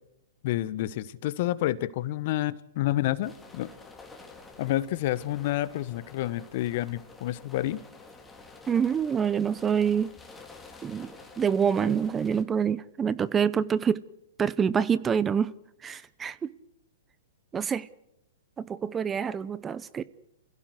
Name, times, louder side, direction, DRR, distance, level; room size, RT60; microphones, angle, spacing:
voice 1, 0.4-3.7 4.6-7.8, left 15 dB, 50° left, 1.2 m, -29 dB
sound 1, 3.2-12.4, left 3 dB, 10° left, 3.3 m, -50 dB
voice 2, 8.7-10.1 10.8-14.0 14.4-15.5 15.8-16.5 17.5-17.9 18.6-20.0, right 7 dB, 20° right, 0.8 m, -26 dB
27.5 x 16.0 x 8.0 m
hypercardioid pair, 120°, 0 cm